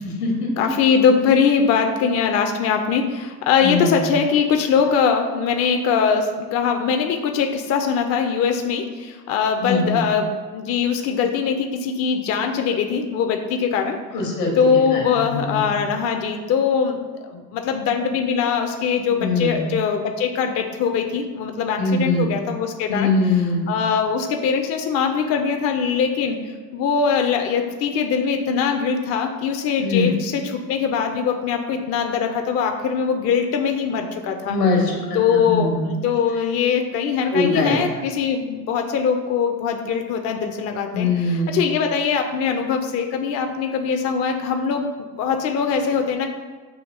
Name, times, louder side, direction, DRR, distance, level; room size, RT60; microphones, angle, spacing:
voice 1, 0.0-0.7 3.6-4.0 9.6-10.0 14.1-15.6 19.2-19.7 21.8-22.3 22.9-23.7 29.8-30.1 34.5-35.9 37.3-38.0 40.9-41.6, left 2 dB, 75° left, 0 dB, 1.1 m, -22 dB
voice 2, 0.6-14.0 14.6-23.1 23.7-26.4 26.7-34.6 35.1-44.9 45.2-46.3, left 6 dB, 35° left, 5 dB, 0.4 m, -22 dB
7.0 x 2.8 x 2.6 m, 1.3 s
figure-of-eight pair, 55°, 47 cm